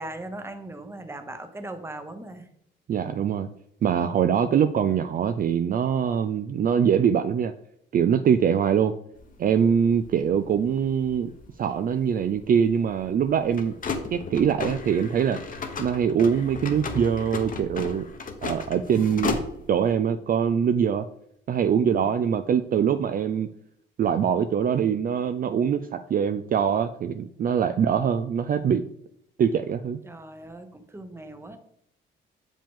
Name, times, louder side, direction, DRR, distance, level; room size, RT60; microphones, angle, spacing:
voice 1, 0.0-2.5 4.4-4.8 19.1-19.6 21.9-22.1 30.0-31.6, right 2 dB, 10° right, 8 dB, 0.9 m, -39 dB
voice 2, 2.9-3.5 3.8-7.5 7.9-8.9 9.4-11.3 11.6-13.7 14.1-15.4 15.8-18.1 18.4-19.4 19.7-21.0 21.5-23.5 24.0-28.8 29.4-30.0, right 8 dB, 45° right, 9 dB, 0.4 m, -23 dB
sound 1, 9.2-19.9, left 4 dB, 45° left, 1.0 m, -35 dB
6.9 x 5.1 x 3.7 m, 0.73 s
cardioid pair, 90°, 20 cm